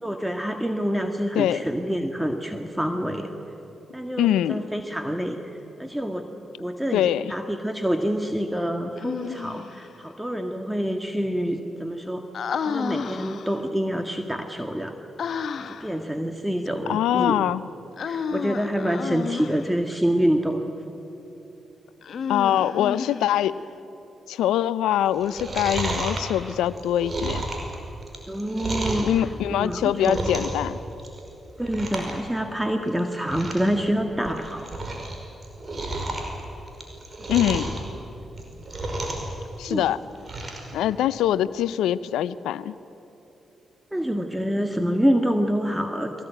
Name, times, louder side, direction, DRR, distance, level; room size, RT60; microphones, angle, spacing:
voice 1, 0.0-3.3 3.9-5.4 5.8-6.3 6.6-12.3 12.7-15.0 15.7-17.5 18.1-20.7 28.3-30.4 31.6-34.7 39.7-39.9 43.9-46.1, equal, 5° right, 5 dB, 1.8 m, -27 dB
voice 2, 4.2-4.6 6.9-7.3 16.9-17.6 22.3-23.6 24.3-27.4 29.0-30.8 37.3-37.7 39.6-40.0 40.7-42.7, left 11 dB, 80° left, 17 dB, 0.5 m, -23 dB
Human voice, 9.0-9.8 12.3-13.7 15.2-16.0 18.0-19.8 22.0-23.6, left 6 dB, 65° left, 1.1 m, -31 dB
Chewing mastication, 25.1-29.1 29.6-30.6 30.9-31.3 31.6-32.1 32.4-32.5 32.9-33.0 33.2-33.7 34.1-35.1 35.4-37.8 38.3-39.3 39.6-40.7 41.0-41.1, right 2 dB, 45° right, 5.3 m, -31 dB
22.0 x 18.0 x 9.3 m, 2.9 s
hypercardioid pair, 45°, 0 cm